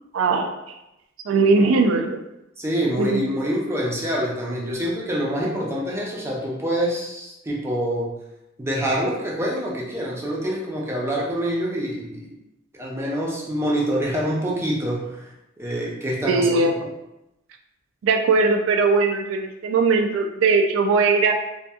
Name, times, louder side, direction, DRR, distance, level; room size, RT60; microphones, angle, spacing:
voice 1, 0.1-0.5 1.3-2.2 3.0-3.5 16.2-16.9 18.0-21.3, right 4 dB, 70° right, 4 dB, 0.3 m, -20 dB
voice 2, 2.6-8.1 8.6-12.3 12.8-15.2 15.6-16.5, equal, 15° right, -4 dB, 0.5 m, -26 dB
2.7 x 2.5 x 2.3 m, 0.90 s
head